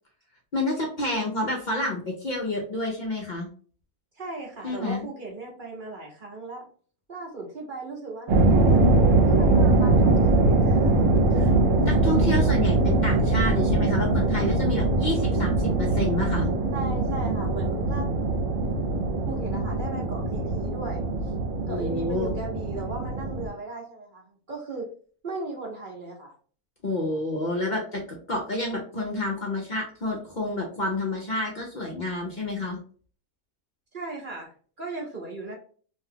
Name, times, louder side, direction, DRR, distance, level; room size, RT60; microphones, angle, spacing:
voice 1, 0.5-3.5 4.6-5.1 11.4-11.5 11.9-16.5 21.7-22.3 26.8-32.8, left 2 dB, 55° left, -1 dB, 0.5 m, -29 dB
voice 2, 4.1-6.6 7.1-11.0 11.3-11.4 16.7-18.1 18.6-18.7 19.2-21.0 21.7-24.9 25.2-26.3 33.9-34.5 34.8-35.5, right 2 dB, 45° right, -1 dB, 0.7 m, -37 dB
sound 1, 8.3-23.5, right 2 dB, 65° right, 1.1 m, -22 dB
2.6 x 2.2 x 3.3 m, 0.43 s
omnidirectional pair, 1.5 m